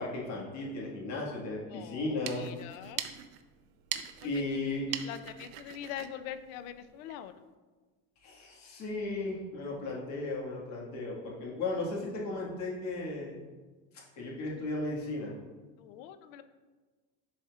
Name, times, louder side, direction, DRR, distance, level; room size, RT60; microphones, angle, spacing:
voice 1, 0.0-2.4 4.2-4.9 5.1-5.2 8.2-13.4 14.2-15.3, left 2 dB, 45° left, -3 dB, 1.8 m, -35 dB
voice 2, 1.7-2.0 2.4-3.0 5.1-7.3 15.8-16.4, left 10 dB, 85° left, 11 dB, 0.6 m, -43 dB
sound 1, 2.0-7.3, right 11 dB, 75° right, 0.7 m, -43 dB
11.0 x 4.3 x 2.4 m, 1.3 s
cardioid pair, 150°, 40 cm